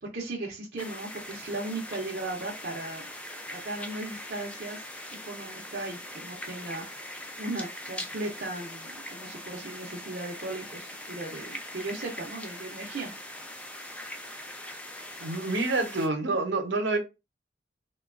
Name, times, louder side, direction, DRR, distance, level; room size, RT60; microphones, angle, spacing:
voice 1, 0.0-3.1 3.5-4.8 5.2-6.8 7.4-13.1, right 2 dB, 55° right, 0.6 m, -37 dB
sound 1, 0.8-16.1, left 1 dB, 5° left, 0.3 m, -41 dB
voice 2, 15.2-17.0, right 2 dB, 85° right, 0.8 m, -27 dB
3.0 x 2.2 x 2.4 m
head